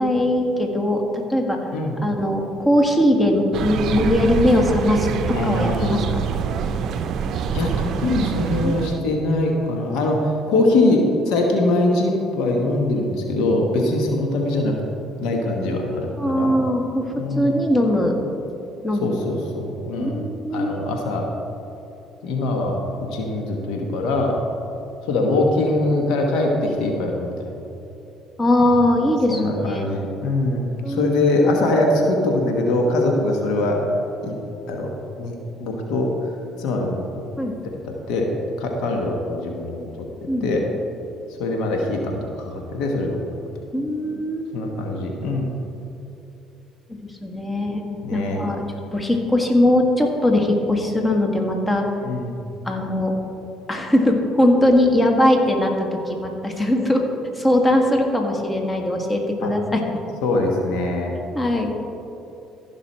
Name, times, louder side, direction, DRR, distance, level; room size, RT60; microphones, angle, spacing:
voice 1, 0.0-1.6 2.0-6.2 8.6-8.8 10.5-10.6 13.8-13.9 16.2-18.2 18.8-19.1 20.0-20.7 28.4-29.8 30.8-31.1 37.4-37.6 40.3-40.6 43.7-44.5 47.2-48.6 48.9-51.9 52.7-53.2 53.7-57.0 57.4-59.8 61.3-61.7, left 1 dB, 20° left, 2 dB, 1.6 m, -20 dB
sound 1, 3.5-9.0, right 7 dB, 60° right, 0.5 m, -25 dB
voice 2, 5.3-6.0 7.5-14.8 15.2-16.5 17.2-17.5 19.0-20.2 20.5-21.3 22.2-22.8 23.1-24.4 25.0-27.6 28.6-28.7 29.3-33.8 34.2-34.3 34.7-34.9 35.2-36.3 36.6-37.1 37.8-38.3 38.6-39.9 40.4-40.6 41.4-43.2 44.5-45.5 48.0-48.4 52.0-52.4 59.4-59.5 60.2-61.1, left 2 dB, 70° left, 1 dB, 1.3 m, -22 dB
15.0 x 6.1 x 4.4 m, 2.9 s
hypercardioid pair, 65°, 0 cm